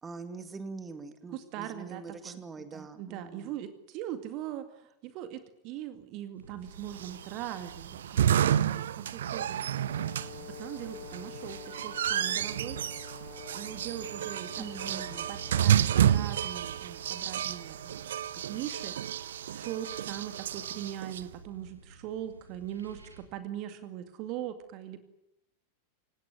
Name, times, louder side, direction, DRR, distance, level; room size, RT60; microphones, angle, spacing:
voice 1, 0.0-3.6 14.6-15.3, right 4 dB, 15° right, 10 dB, 2.4 m, -43 dB
voice 2, 1.3-9.6 10.4-12.8 13.5-15.0 15.3-18.0 18.3-19.2 19.5-25.0, right 11 dB, 40° right, 10 dB, 2.2 m, -41 dB
sound 1, 6.3-23.3, right 3 dB, 80° right, 3.3 m, -52 dB
sound 2, 6.9-21.2, right 10 dB, 60° right, 0.9 m, -30 dB
Brass instrument, 9.9-15.9, left 6 dB, 60° left, 3.4 m, -48 dB
28.5 x 17.5 x 9.7 m, 0.85 s
figure-of-eight pair, 90°, 0 cm